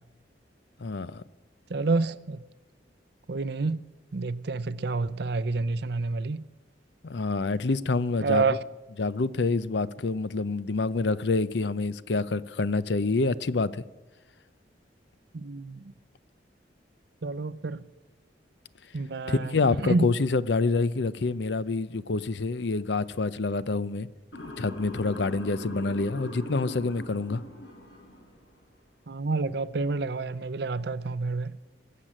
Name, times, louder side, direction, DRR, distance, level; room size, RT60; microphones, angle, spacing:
voice 1, 0.8-1.2 7.0-8.6 9.0-13.8 19.3-24.1 24.4-27.4, left 3 dB, 70° left, 0.6 m, -27 dB
voice 2, 1.7-2.4 3.3-3.8 4.1-6.4 8.2-8.6 15.3-15.8 17.2-17.8 18.9-19.5 19.9-20.1 29.1-31.5, right 3 dB, 65° right, 0.6 m, -28 dB
Motor vehicle (road) / Siren, 24.3-28.5, left 1 dB, 85° left, 5.3 m, -41 dB
19.5 x 7.6 x 8.9 m
head